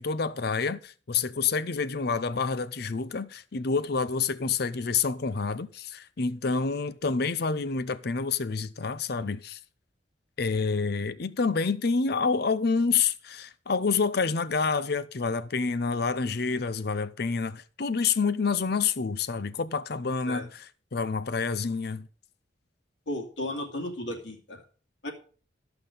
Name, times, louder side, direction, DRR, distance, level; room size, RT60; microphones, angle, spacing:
voice 1, 0.0-9.6 10.4-20.6 20.9-22.1, left 5 dB, 55° left, 0.6 m, -28 dB
voice 2, 23.1-24.6 25.0-25.1, left 1 dB, 70° left, 2.6 m, -34 dB
13.0 x 5.9 x 5.3 m
head